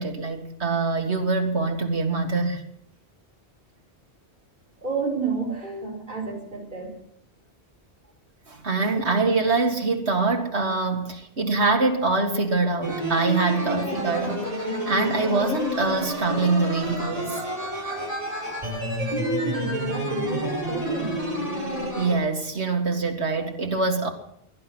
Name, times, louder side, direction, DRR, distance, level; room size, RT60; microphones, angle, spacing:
voice 1, 0.0-2.6 8.5-17.4 22.0-24.1, right 3 dB, 85° right, 2.4 m, -24 dB
voice 2, 4.8-6.9 19.1-21.2, right 4 dB, 50° right, 4.9 m, -30 dB
sound 1, 12.8-22.1, equal, 35° right, 5.3 m, -29 dB
18.5 x 11.5 x 6.2 m
omnidirectional pair, 1.1 m